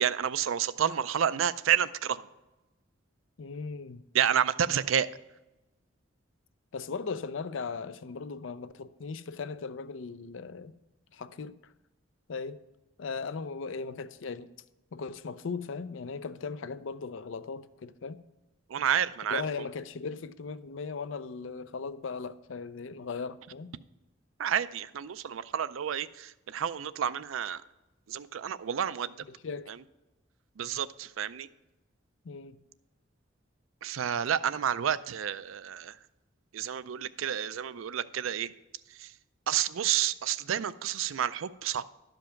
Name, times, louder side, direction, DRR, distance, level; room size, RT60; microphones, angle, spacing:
voice 1, 0.0-2.2 4.1-5.1 18.7-19.7 24.4-27.6 28.1-29.1 29.7-29.8 30.6-31.5 33.8-36.0 36.5-38.5 39.0-39.1 39.5-41.8, right 9 dB, 90° right, 0.4 m, -30 dB
voice 2, 3.4-4.0 6.7-10.8 11.1-11.5 12.3-12.6 13.0-14.5 14.9-18.2 19.3-23.7 29.4-29.7 32.2-32.6, left 4 dB, 75° left, 0.5 m, -38 dB
12.0 x 5.2 x 5.7 m
head